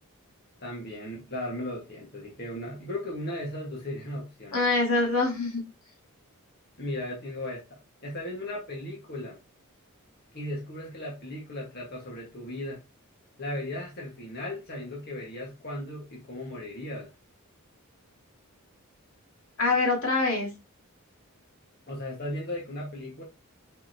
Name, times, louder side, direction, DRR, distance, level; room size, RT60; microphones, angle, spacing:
voice 1, 0.6-4.7 6.8-7.6 8.0-9.4 10.3-12.8 13.4-17.1 21.9-23.2, left 1 dB, 45° left, 2.0 m, -36 dB
voice 2, 4.5-5.6 19.6-20.5, left 3 dB, 70° left, 2.6 m, -24 dB
5.9 x 5.6 x 3.0 m
head